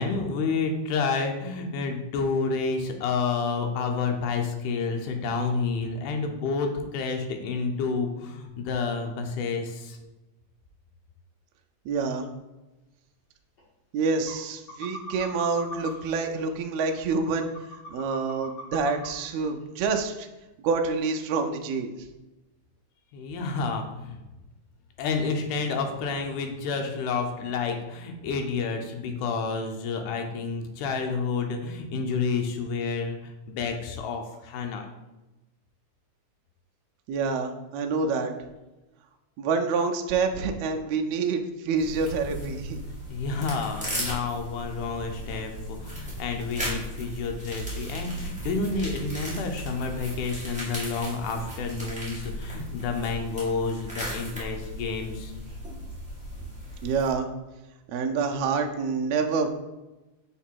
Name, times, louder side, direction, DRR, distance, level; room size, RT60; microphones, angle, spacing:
voice 1, 0.0-10.0 23.1-24.2 25.0-34.9 43.1-55.3, left 4 dB, 85° left, 4 dB, 2.2 m, -29 dB
voice 2, 11.8-12.3 13.9-17.5 17.9-20.3 20.6-22.1 37.1-38.3 39.4-42.8 56.8-57.3 57.9-59.5, right 4 dB, 80° right, 3 dB, 1.6 m, -27 dB
sound 1, 13.6-13.7 14.3-14.4 14.7-15.9 16.4-16.5 17.0-19.1 19.5-19.6 19.9-20.0, equal, 50° left, 1.4 m, -39 dB
sound 2, 41.8-57.1, equal, 5° right, 0.8 m, -36 dB
5.9 x 3.9 x 4.5 m, 1.0 s
omnidirectional pair, 3.5 m